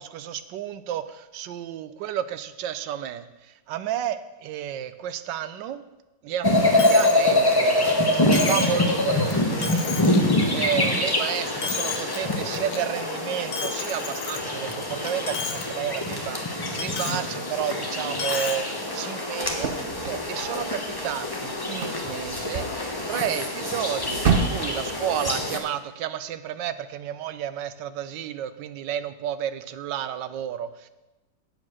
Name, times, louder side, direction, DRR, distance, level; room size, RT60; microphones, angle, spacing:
voice 1, 0.0-5.8 6.2-7.9 8.3-9.9 10.5-30.9, right 10 dB, 85° right, 13 dB, 1.3 m, -32 dB
sound 1, 6.4-25.6, left 1 dB, 15° left, 0.9 m, -25 dB
Coin (dropping), 6.8-7.2 7.6-7.7 8.3-8.8 9.3-9.4 9.6-10.2 10.6-11.2 11.5-12.2 12.5-12.8 13.5-14.7 15.1-15.6 16.0-16.1 16.8-17.2 18.1-18.6, left 6 dB, 80° left, 1.5 m, -32 dB
sound 2, 19.4-25.3, right 5 dB, 50° right, 0.7 m, -31 dB
9.1 x 7.3 x 6.2 m, 1.0 s
omnidirectional pair, 1.9 m